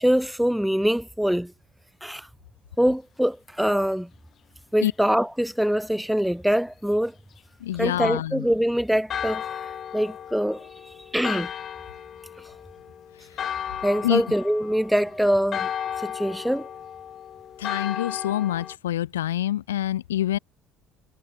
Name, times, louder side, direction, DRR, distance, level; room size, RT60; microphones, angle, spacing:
voice 1, 0.0-1.5 2.0-2.3 2.8-4.1 4.7-7.1 7.8-9.6 9.9-11.5 13.8-15.7 16.0-16.7, equal, ahead, 2.1 m, -24 dB
voice 2, 7.6-8.5 14.0-14.2 17.6-20.4, left 12 dB, 80° left, 1.2 m, -26 dB
Church bell, 9.1-18.8, left 9 dB, 45° left, 1.1 m, -35 dB
hypercardioid pair, 60°, 0 cm